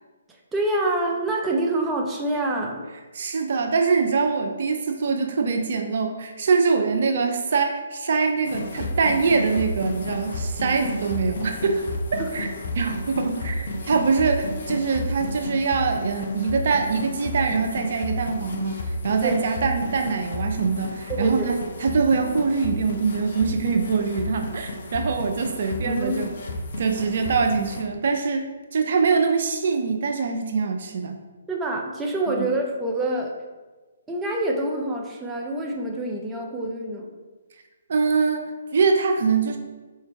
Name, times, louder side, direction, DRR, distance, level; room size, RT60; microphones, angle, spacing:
voice 1, 0.5-2.8 10.8-10.9 12.2-12.3 19.2-19.4 21.1-21.5 25.8-26.3 31.5-33.3 34.1-37.1, right 1 dB, 10° right, 0 dB, 0.6 m, -26 dB
voice 2, 3.1-11.8 12.1-12.5 12.7-26.3 26.8-28.5 28.7-31.2 32.3-32.5 37.9-39.6, right 5 dB, 55° right, 4 dB, 0.5 m, -23 dB
sound 1, 8.4-27.8, left 1 dB, 60° left, 0.7 m, -32 dB
4.2 x 2.8 x 4.4 m, 1.3 s
figure-of-eight pair, 140°, 0 cm